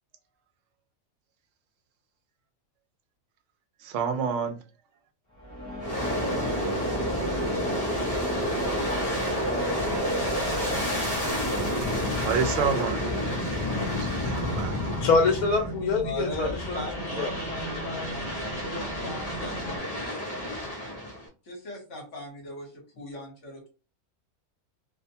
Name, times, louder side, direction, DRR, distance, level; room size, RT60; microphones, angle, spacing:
voice 1, 3.8-4.6 12.2-13.1 14.0-15.0, right 6 dB, 65° right, 0.9 m, -29 dB
sound 1, 5.3-12.2, equal, 15° left, 0.9 m, -36 dB
Aircraft, 5.8-15.8 16.3-21.3, equal, 40° left, 0.6 m, -30 dB
sound 2, 8.5-19.8, right 2 dB, 20° right, 0.8 m, -40 dB
voice 2, 15.0-17.3, left 4 dB, 80° left, 1.1 m, -25 dB
voice 3, 16.0-20.3 21.4-23.7, left 1 dB, 55° left, 1.3 m, -39 dB
2.8 x 2.1 x 2.7 m
omnidirectional pair, 1.5 m